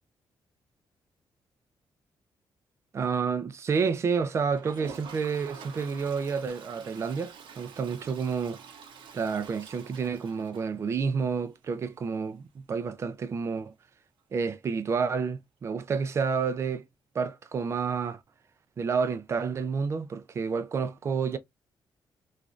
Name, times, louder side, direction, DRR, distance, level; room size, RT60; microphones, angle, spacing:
voice 1, 2.9-8.6 9.1-13.7 14.3-16.8 17.1-18.2 18.8-21.4, right 5 dB, 35° right, 0.4 m, -29 dB
Toilet flush, 4.5-11.2 11.6-11.7 11.9-12.0 12.2-12.3 14.9-15.0 16.3-16.4, right 6 dB, 85° right, 0.6 m, -47 dB
3.1 x 2.4 x 2.4 m
wide cardioid pair, 160°, 8 cm